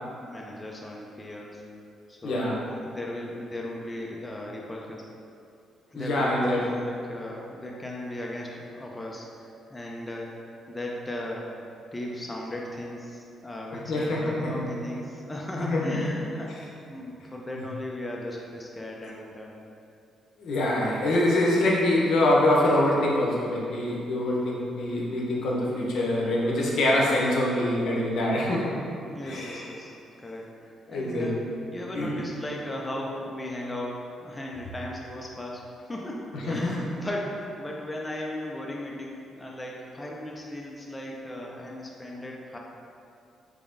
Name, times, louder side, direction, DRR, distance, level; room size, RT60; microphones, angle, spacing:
voice 1, 0.2-1.6 2.1-5.0 5.9-10.3 10.7-11.5 11.9-19.5 29.1-29.9 30.2-31.4 31.7-33.9 34.2-42.6, left 1 dB, 15° left, -2 dB, 0.4 m, -36 dB
voice 2, 2.2-2.6 5.9-6.8 13.9-14.7 15.6-16.1 19.0-19.1 20.4-28.8 29.2-29.6 30.9-31.4 31.9-32.2 36.3-36.5, left 1 dB, 70° left, -3 dB, 0.7 m, -25 dB
3.5 x 3.5 x 2.5 m, 2.6 s
cardioid pair, 90°, 0 cm